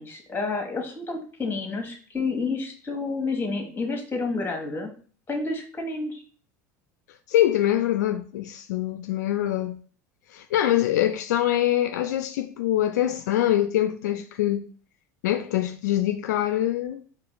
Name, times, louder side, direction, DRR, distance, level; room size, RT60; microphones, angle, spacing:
voice 1, 0.0-4.9 5.3-6.2, left 3 dB, 25° left, 1.4 m, -30 dB
voice 2, 7.3-9.8 10.3-14.7 15.2-17.0, left 12 dB, 75° left, 0.4 m, -24 dB
4.7 x 2.4 x 3.8 m
hypercardioid pair, 80°, 9 cm